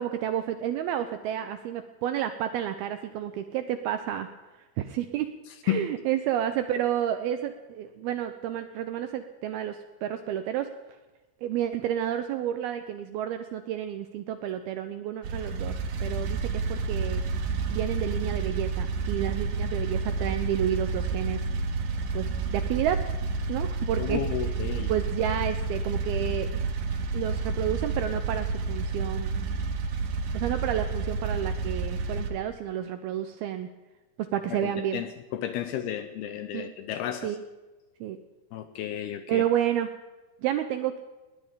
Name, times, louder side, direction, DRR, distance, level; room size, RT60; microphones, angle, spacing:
voice 1, 0.0-4.3 4.8-5.3 5.6-10.7 11.4-17.2 17.7-21.5 22.1-23.0 23.5-24.6 24.9-26.6 27.1-29.5 30.3-33.7 34.2-35.0 36.5-36.7 37.2-37.4 38.0-38.2 39.3-39.9 40.4-41.0, right 10 dB, 85° right, 8 dB, 2.3 m, -30 dB
sound 1, 15.2-32.3, right 4 dB, 60° right, 2.4 m, -30 dB
voice 2, 24.0-24.9 34.5-37.3 38.5-39.4, left 11 dB, 80° left, 9 dB, 2.4 m, -32 dB
20.0 x 19.0 x 3.7 m, 1.2 s
omnidirectional pair, 5.2 m